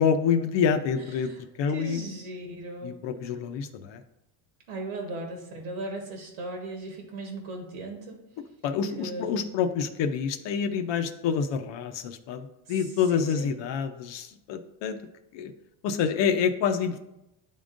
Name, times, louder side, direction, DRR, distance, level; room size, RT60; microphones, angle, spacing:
voice 1, 0.0-2.0 2.8-4.0 8.6-15.0 15.3-15.5 15.8-17.0, left 7 dB, 60° left, 7 dB, 0.6 m, -27 dB
voice 2, 1.7-3.0 4.7-8.2 8.9-9.4 12.7-12.8 13.1-13.5, right 2 dB, 80° right, 1 dB, 1.4 m, -37 dB
10.5 x 3.7 x 2.5 m, 0.88 s
cardioid pair, 135°, 49 cm